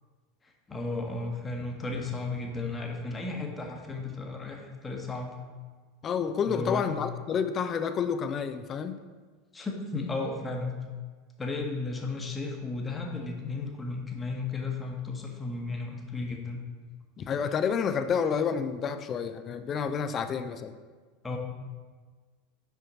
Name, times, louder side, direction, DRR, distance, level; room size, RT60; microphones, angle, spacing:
voice 1, 0.7-5.3 6.5-6.9 9.5-10.8 11.4-16.6 21.2-21.4, left 3 dB, 15° left, 1 dB, 1.1 m, -34 dB
voice 2, 6.0-9.0 17.2-20.7, left 6 dB, 30° left, 10 dB, 0.4 m, -29 dB
5.9 x 5.6 x 4.0 m, 1.4 s
figure-of-eight pair, 80°, 0 cm